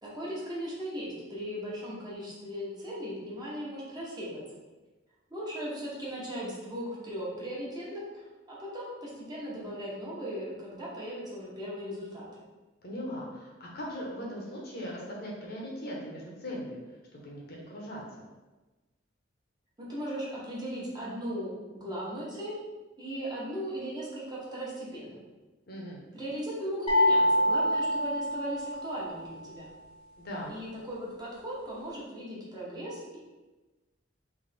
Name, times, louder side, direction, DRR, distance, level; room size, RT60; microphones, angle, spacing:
voice 1, 0.0-4.4 5.3-12.3 19.8-22.6 23.0-25.2 26.1-29.7 30.5-33.2, equal, 20° right, -6 dB, 1.1 m, -37 dB
voice 2, 12.8-16.8 17.1-18.2 25.7-26.1 30.2-30.6, equal, 55° left, -3 dB, 1.0 m, -39 dB
sound 1, 26.9-29.0, left 1 dB, 30° left, 0.8 m, -25 dB
3.5 x 3.2 x 3.4 m, 1.2 s
head